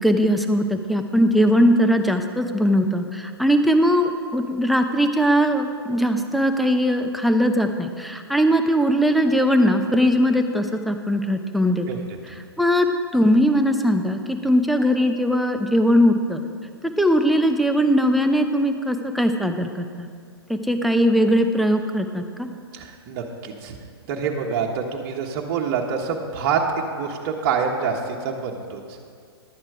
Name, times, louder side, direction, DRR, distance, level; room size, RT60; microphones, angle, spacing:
voice 1, 0.0-11.9 12.6-12.9 13.1-16.4 16.8-20.1 20.5-22.5, equal, ahead, 6 dB, 0.6 m, -20 dB
voice 2, 22.7-23.7 24.1-28.8, right 6 dB, 45° right, 0 dB, 1.3 m, -26 dB
12.0 x 8.8 x 4.9 m, 2.2 s
hypercardioid pair, 125°, 14 cm